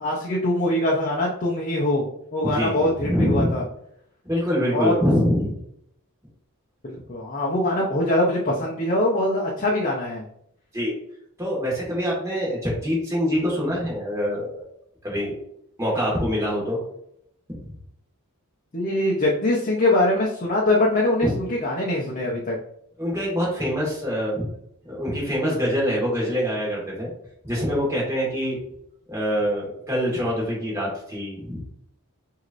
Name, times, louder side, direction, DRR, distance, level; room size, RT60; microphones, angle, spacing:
voice 1, 0.0-2.0 2.3-3.6 4.7-4.9 6.8-10.2 18.7-22.6, left 1 dB, 35° left, -3 dB, 0.8 m, -23 dB
voice 2, 2.5-3.6 4.2-5.6 10.7-10.9 11.4-14.5 15.0-15.3 15.8-16.8 17.5-17.7 21.2-21.3 23.0-24.5 24.9-27.1 27.4-28.6 29.1-31.6, equal, 15° right, -4 dB, 1.8 m, -24 dB
6.2 x 2.8 x 2.6 m, 0.73 s
head